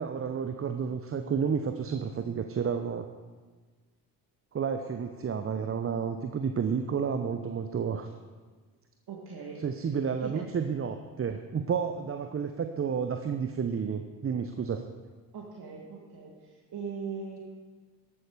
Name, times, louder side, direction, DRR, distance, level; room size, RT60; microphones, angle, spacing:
voice 1, 0.0-3.0 4.5-8.1 9.6-14.8, right 6 dB, 30° right, 7 dB, 0.8 m, -31 dB
voice 2, 9.1-9.9 10.2-10.4 15.3-17.4, right 5 dB, 50° right, -2 dB, 2.1 m, -40 dB
13.5 x 8.6 x 4.9 m, 1.4 s
hypercardioid pair, 45°, 48 cm